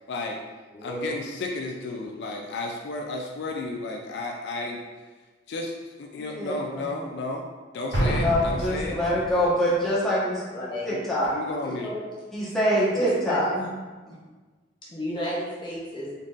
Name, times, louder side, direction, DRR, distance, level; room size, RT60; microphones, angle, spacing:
voice 1, 0.1-0.4 0.8-4.8 5.5-7.5 7.7-9.0 10.9-11.0 11.3-11.9, left 2 dB, 60° left, 1 dB, 0.3 m, -33 dB
voice 2, 0.7-1.1 9.4-9.5 10.5-10.9 11.6-12.0 12.9-13.7 14.8-16.2, equal, 25° left, -6 dB, 0.6 m, -33 dB
voice 3, 6.1-6.9 8.0-10.4 10.8-11.3 12.3-13.5, equal, ahead, -9 dB, 1.1 m, -25 dB
Explosion, 7.9-9.5, equal, 85° right, 1.2 m, -27 dB
3.9 x 3.7 x 2.4 m, 1.3 s
head